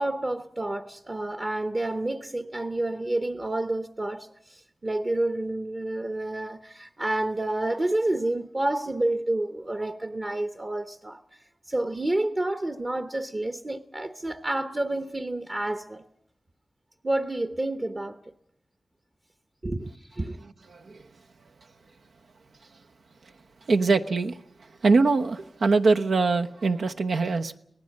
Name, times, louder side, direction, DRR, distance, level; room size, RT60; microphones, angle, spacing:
voice 1, 0.0-11.2 11.7-16.0 17.0-18.3 19.6-20.4, right 1 dB, 30° right, 0.9 m, -29 dB
voice 2, 20.7-21.1 23.7-24.4 24.8-27.6, right 3 dB, 85° right, 1.0 m, -23 dB
25.5 x 18.5 x 6.5 m
wide cardioid pair, 110°, 0 cm